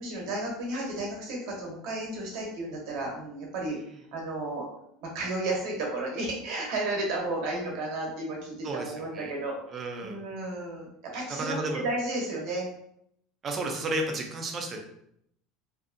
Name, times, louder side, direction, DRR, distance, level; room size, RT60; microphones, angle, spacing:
voice 1, 0.0-3.8 4.1-4.7 5.0-9.6 10.0-12.7, right 2 dB, 55° right, -1 dB, 0.7 m, -33 dB
voice 2, 8.6-9.3 9.7-10.2 11.4-11.8 13.4-14.8, right 2 dB, 25° right, 2 dB, 0.4 m, -32 dB
2.6 x 2.3 x 2.4 m, 0.73 s
cardioid pair, 175°, 0 cm